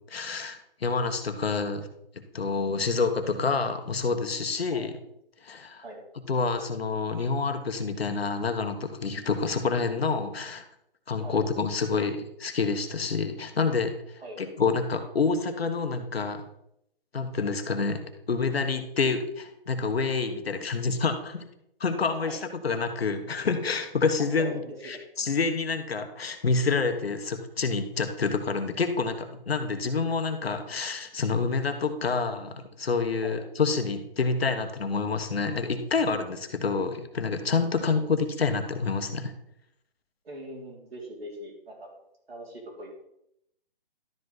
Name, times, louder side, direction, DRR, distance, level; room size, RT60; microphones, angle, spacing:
voice 1, 0.1-1.9 2.3-4.9 5.4-5.8 6.3-10.6 11.1-13.9 14.4-16.4 17.1-18.0 18.3-21.5 21.8-39.3, left 4 dB, 90° left, 7 dB, 1.3 m, -28 dB
voice 2, 24.2-25.3 33.2-33.4 37.8-38.1 40.2-42.0 42.3-43.0, right 1 dB, 85° right, -3 dB, 3.1 m, -42 dB
12.0 x 5.3 x 4.0 m, 0.76 s
hypercardioid pair, 165°, 30 cm